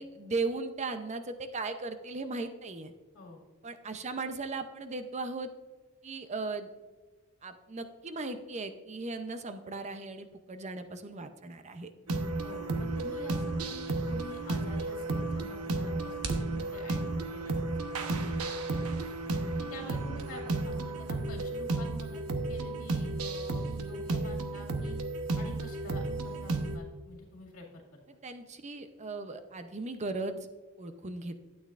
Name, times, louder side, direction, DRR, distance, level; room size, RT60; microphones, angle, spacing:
voice 1, 0.0-2.9 3.6-5.5 6.0-6.7 7.4-11.9 19.8-20.0 28.1-30.4 30.8-31.4, right 3 dB, 30° right, 9 dB, 0.6 m, -37 dB
sound 1, 12.1-26.8, right 2 dB, 85° right, 0.9 m, -33 dB
voice 2, 12.4-19.1 19.6-22.2 22.5-25.0 25.4-28.0, left 2 dB, 65° left, -2 dB, 2.2 m, -48 dB
sound 2, 14.5-20.8, right 3 dB, 60° right, 1.0 m, -48 dB
12.5 x 8.7 x 2.5 m, 1.4 s
head